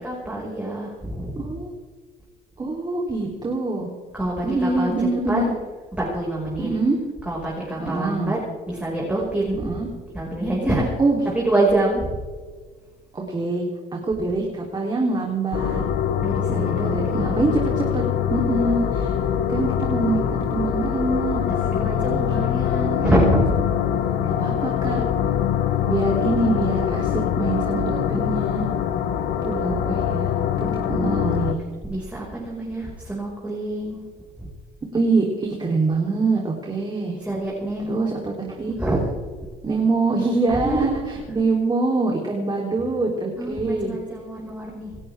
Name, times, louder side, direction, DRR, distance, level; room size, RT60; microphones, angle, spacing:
voice 1, 0.0-1.5 4.1-5.4 6.0-6.7 7.3-8.4 8.7-9.8 10.1-10.9 11.3-12.1 16.2-17.6 21.6-23.6 30.6-31.2 31.9-34.1 34.4-34.5 37.2-38.5 38.8-39.1 40.5-41.4 43.3-45.0, right 1 dB, 10° right, -5 dB, 5.8 m, -26 dB
voice 2, 1.3-1.7 2.6-3.9 4.4-5.5 6.6-7.0 7.8-8.3 9.6-9.9 11.0-11.2 13.1-13.6 13.9-15.8 16.5-18.0 18.3-19.1 19.5-22.2 24.1-25.0 25.9-27.1 27.4-28.6 29.4-30.3 30.6-31.6 34.9-37.2 37.9-38.7 39.6-41.0 41.3-44.0, right 3 dB, 25° right, -1 dB, 3.6 m, -24 dB
sound 1, 15.5-31.5, left 9 dB, 70° left, 1.6 m, -23 dB
28.5 x 13.5 x 3.7 m, 1.5 s
cardioid pair, 110°, 17 cm